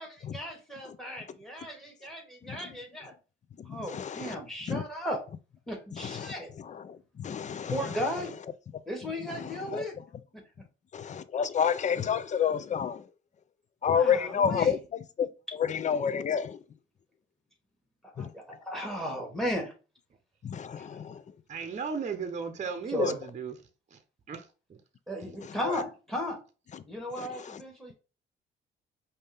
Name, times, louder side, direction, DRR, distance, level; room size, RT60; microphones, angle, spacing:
voice 1, 0.0-3.1 3.7-5.2 5.7-6.5 7.6-8.3 8.9-10.0 10.3-10.4 13.9-14.8 18.1-19.7 20.8-20.9 22.9-23.1 25.1-26.4 26.9-27.9, equal, ahead, 2.0 m, -35 dB
voice 2, 3.6-4.4 4.7-4.8 6.0-8.0 9.3-9.8 10.9-13.0 13.8-14.8 15.2-15.3 15.6-16.6 18.2-18.3 20.4-21.2 23.0-23.1 25.5-25.8 26.7-26.8 27.2-27.6, left 7 dB, 35° left, 0.5 m, -30 dB
voice 3, 21.5-23.5 23.9-24.0 24.3-24.4, right 6 dB, 35° right, 0.8 m, -34 dB
5.2 x 2.8 x 3.5 m
cardioid pair, 90°, 20 cm